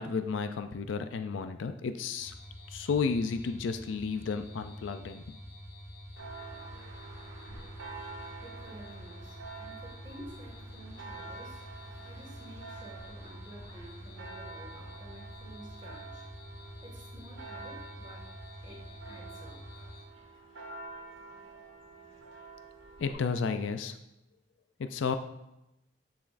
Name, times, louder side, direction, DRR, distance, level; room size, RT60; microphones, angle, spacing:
voice 1, 0.0-2.3 2.7-5.2 23.0-23.9 24.8-25.2, left 5 dB, 75° left, 9 dB, 0.4 m, -32 dB
sound 1, 2.2-20.0, equal, 50° left, 2.1 m, -47 dB
Church bell, 6.2-23.1, right 3 dB, 85° right, 1.4 m, -48 dB
voice 2, 8.4-11.6 12.0-16.3 16.8-19.7, right 1 dB, 20° right, -3 dB, 1.8 m, -51 dB
7.2 x 7.1 x 2.5 m, 0.91 s
head